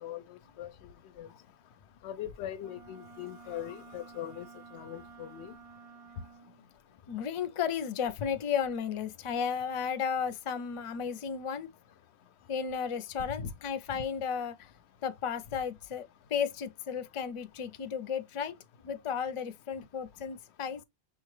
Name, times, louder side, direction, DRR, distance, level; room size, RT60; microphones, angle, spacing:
voice 1, 0.0-1.3 2.0-4.5 4.7-5.6 13.4-13.5 13.9-14.0, left 10 dB, 85° left, 0.8 m, -41 dB
Wind instrument woodwind instrument, 2.6-6.6, right 5 dB, 50° right, 0.4 m, -52 dB
voice 2, 7.1-11.7 12.5-14.7 15.0-18.6 18.8-20.8, left 7 dB, 40° left, 0.4 m, -34 dB
6.2 x 2.3 x 3.2 m
omnidirectional pair, 1.1 m